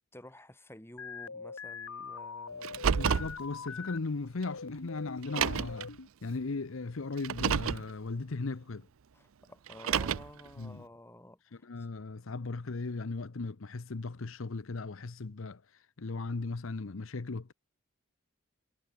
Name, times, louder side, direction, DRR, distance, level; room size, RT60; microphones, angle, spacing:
voice 1, 0.1-2.9 9.1-11.9, left 1 dB, 10° left, 2.7 m, -52 dB
sound 1, 1.0-4.0 4.5-6.1, left 5 dB, 85° left, 1.7 m, -43 dB
Car, 2.6-3.4 4.4-4.5 5.2-5.8 7.2-7.9 9.7-10.4, right 7 dB, 70° right, 0.5 m, -29 dB
voice 2, 2.9-6.0 6.2-8.9 10.6-10.8 11.5-17.5, left 3 dB, 65° left, 0.8 m, -37 dB
head